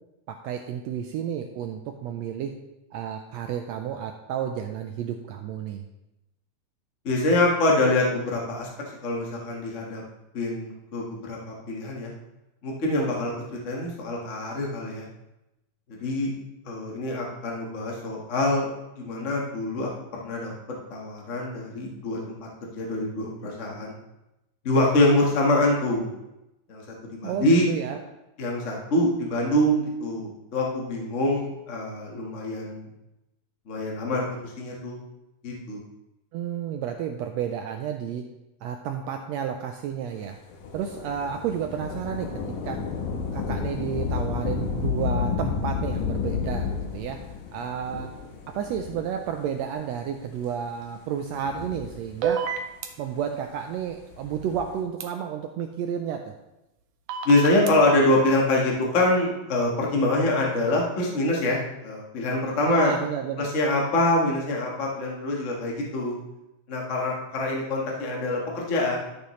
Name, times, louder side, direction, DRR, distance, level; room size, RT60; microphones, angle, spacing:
voice 1, 0.3-2.5 2.9-5.8 27.2-28.0 36.3-38.2 38.6-40.4 40.7-42.8 43.3-47.2 47.5-48.1 48.5-52.5 53.0-56.3 62.6-63.5, right 8 dB, 90° right, 5 dB, 1.5 m, -31 dB
voice 2, 7.0-8.7 9.0-10.0 10.3-12.1 12.6-13.3 13.6-15.0 15.9-16.3 16.6-18.7 19.0-20.5 20.9-22.2 22.7-24.0 24.6-26.1 26.7-26.8 27.1-27.7 28.4-32.9 33.7-35.0 35.4-35.8 57.2-62.9 63.4-66.2 66.7-69.0, left 1 dB, 40° left, -2 dB, 1.1 m, -25 dB
Thunder / Rain, 40.5-49.5 50.2-50.3 51.2-52.5 54.0-54.8, left 6 dB, 90° left, 2.7 m, -31 dB
sound 1, 52.2-52.9 55.0-55.1 57.1-57.7, right 6 dB, 70° right, 1.5 m, -27 dB
12.5 x 6.6 x 3.2 m, 0.94 s
omnidirectional pair, 3.6 m